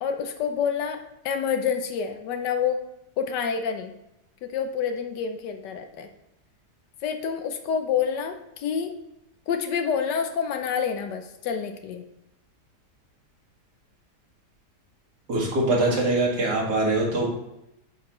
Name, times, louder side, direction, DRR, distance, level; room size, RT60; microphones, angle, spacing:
voice 1, 0.0-2.8 3.2-3.9 4.4-6.1 7.0-8.9 9.5-12.0, left 7 dB, 85° left, 6 dB, 1.4 m, -28 dB
voice 2, 15.3-17.3, right 2 dB, 70° right, -4 dB, 2.5 m, -23 dB
9.2 x 5.3 x 3.0 m, 0.86 s
omnidirectional pair, 1.8 m